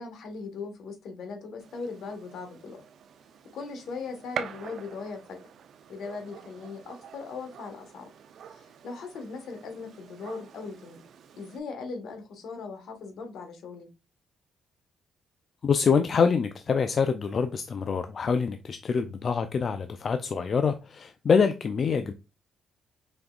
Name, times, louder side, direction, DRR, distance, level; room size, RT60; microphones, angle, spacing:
voice 1, 0.0-2.8 3.5-5.4 5.9-8.1 8.5-11.0 11.4-13.9, left 4 dB, 70° left, 1.3 m, -39 dB
Gunshot gunfire, 1.6-11.6, right 8 dB, 65° right, 0.5 m, -45 dB
voice 2, 15.6-22.1, left 6 dB, 50° left, 0.4 m, -25 dB
5.2 x 3.5 x 2.3 m
cardioid pair, 90°, 0 cm